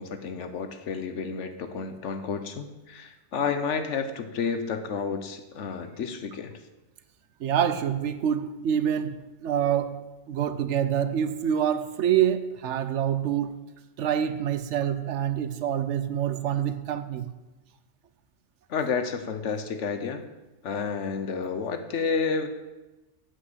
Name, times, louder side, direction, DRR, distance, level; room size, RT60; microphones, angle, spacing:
voice 1, 0.0-6.5 18.7-20.2 20.6-22.5, left 5 dB, 75° left, 1.2 m, -30 dB
voice 2, 7.4-13.6 14.0-17.3, right 9 dB, 75° right, 1.0 m, -26 dB
7.8 x 5.9 x 7.9 m
omnidirectional pair, 1.2 m